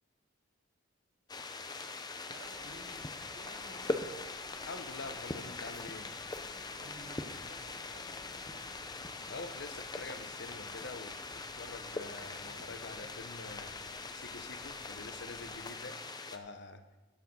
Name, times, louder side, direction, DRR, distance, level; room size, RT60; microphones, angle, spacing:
sound 1, 1.3-16.4, left 3 dB, 20° left, 0.6 m, -42 dB
voice 1, 2.3-3.1 3.3-4.4 6.7-8.8, right 1 dB, 70° right, -2 dB, 2.9 m, -54 dB
sound 2, 2.4-15.5, equal, 80° left, 3.7 m, -60 dB
voice 2, 4.7-6.1 9.3-16.0 16.3-16.8, left 3 dB, 60° left, 8 dB, 1.0 m, -46 dB
14.0 x 7.0 x 5.5 m, 1.2 s
head